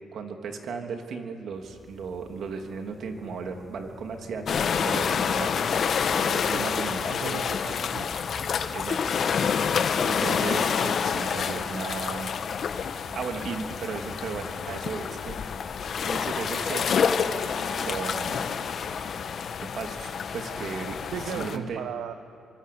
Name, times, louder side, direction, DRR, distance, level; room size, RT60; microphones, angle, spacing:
voice 1, 0.1-5.6 6.1-7.2 8.7-9.2 10.0-12.3 13.1-15.4 16.1-17.1 17.7-18.7 19.6-21.0 21.3-21.8, right 5 dB, 65° right, 4 dB, 3.0 m, -35 dB
sound 1, 1.5-19.0, left 2 dB, 10° left, 7.3 m, -50 dB
sound 2, 4.5-21.6, left 6 dB, 55° left, 1.3 m, -28 dB
voice 2, 7.0-8.2 21.1-22.1, right 9 dB, 80° right, 8 dB, 1.1 m, -36 dB
27.5 x 24.0 x 8.7 m, 2.5 s
cardioid pair, 90°, 0 cm